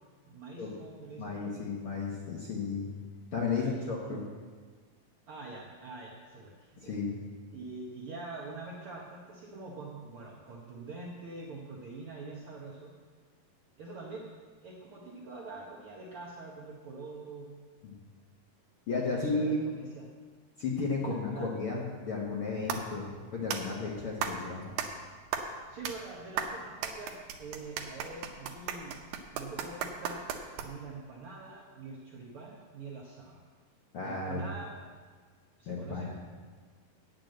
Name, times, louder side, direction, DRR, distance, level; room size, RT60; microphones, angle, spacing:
voice 1, 0.3-1.7 3.4-4.2 5.3-6.9 7.5-12.9 13.8-14.3 14.6-17.5 19.0-20.1 21.0-21.5 25.7-28.9 29.3-30.3 30.6-33.4 34.0-34.7 35.6-36.1, right 3 dB, 75° right, -3 dB, 1.3 m, -44 dB
voice 2, 1.2-2.9 3.3-4.2 6.8-7.2 17.8-17.9 18.9-19.6 20.6-24.7 33.9-34.5 35.7-36.1, left 4 dB, 60° left, -4 dB, 1.5 m, -33 dB
sound 1, 22.3-31.0, right 7 dB, 90° right, 2.6 m, -38 dB
9.3 x 6.9 x 7.7 m, 1.5 s
omnidirectional pair, 4.0 m